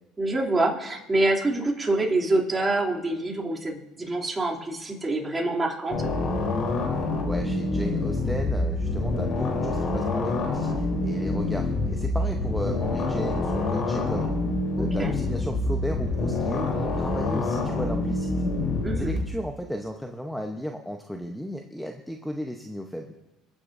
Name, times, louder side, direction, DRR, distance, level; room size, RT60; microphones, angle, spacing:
voice 1, 0.2-6.0 14.8-15.1 18.8-19.2, right 2 dB, 20° right, -3 dB, 2.8 m, -26 dB
sound 1, 5.9-19.2, left 2 dB, 55° left, 3.5 m, -26 dB
voice 2, 7.2-14.3 14.8-18.3 19.0-23.1, equal, ahead, 3 dB, 0.9 m, -34 dB
26.0 x 9.8 x 2.6 m, 1.0 s
supercardioid pair, 95°, 0 cm